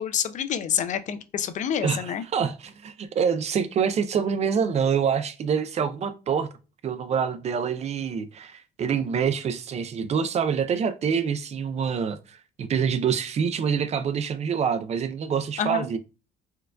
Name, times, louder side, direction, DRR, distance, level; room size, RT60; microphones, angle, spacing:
voice 1, 0.0-2.2 15.6-15.9, left 8 dB, 45° left, 0.4 m, -27 dB
voice 2, 1.8-6.5 6.8-16.0, right 7 dB, 40° right, 0.4 m, -26 dB
4.5 x 2.3 x 2.3 m
cardioid pair, 110°, 17 cm